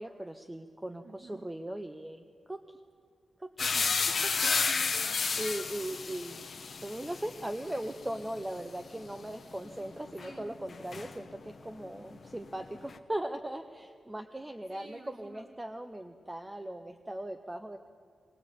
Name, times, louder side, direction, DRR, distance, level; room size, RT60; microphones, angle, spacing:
voice 1, 0.0-2.8 3.4-3.7 4.4-4.5 5.1-6.4 6.8-17.8, right 1 dB, 10° right, 8 dB, 0.6 m, -39 dB
voice 2, 1.0-1.4 3.7-5.2 10.2-10.7 14.7-15.5, right 3 dB, 50° right, 3 dB, 1.7 m, -50 dB
sound 1, 3.6-11.6 11.8-13.0, left 5 dB, 45° left, 1.0 m, -33 dB
20.5 x 18.0 x 8.4 m, 2.2 s
wide cardioid pair, 160°, 0 cm